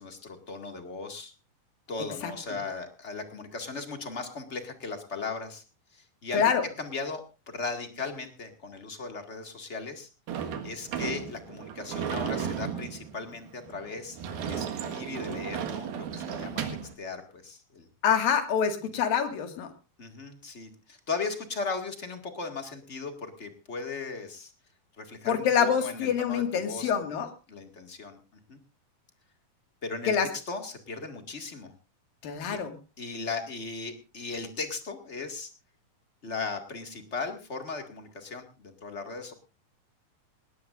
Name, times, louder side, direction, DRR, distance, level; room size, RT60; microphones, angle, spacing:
voice 1, 0.0-1.3 1.9-5.6 5.9-6.4 6.8-7.2 7.5-10.1 10.4-14.2 14.5-16.6 17.0-17.9 20.0-24.5 25.0-27.1 27.5-28.2 28.5-28.6 29.8-31.7 32.4-32.6 33.0-35.5 36.2-39.3, left 4 dB, 25° left, 5 dB, 1.5 m, -37 dB
voice 2, 6.3-6.6 18.0-19.7 25.3-27.3 30.1-30.3 32.2-32.7, left 7 dB, 75° left, 7 dB, 3.6 m, -26 dB
Sliding door / Slam, 10.3-16.9, right 8 dB, 80° right, 3.5 m, -34 dB
19.5 x 18.5 x 2.5 m, 0.31 s
omnidirectional pair, 4.2 m